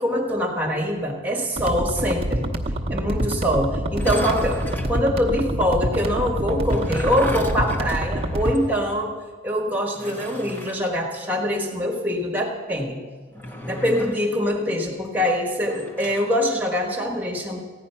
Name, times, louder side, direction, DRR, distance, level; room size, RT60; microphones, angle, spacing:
voice 1, 0.0-2.5 2.9-9.1 9.4-13.0 13.7-17.6, equal, 10° right, 0 dB, 1.5 m, -24 dB
sound 1, 1.6-8.6, right 1 dB, 30° right, 0.9 m, -26 dB
sound 2, 3.9-5.0 6.5-8.8 9.0-9.1 9.9-10.8 13.3-14.3 15.7-16.3, left 1 dB, 10° left, 0.8 m, -34 dB
15.5 x 9.5 x 5.7 m, 1.5 s
head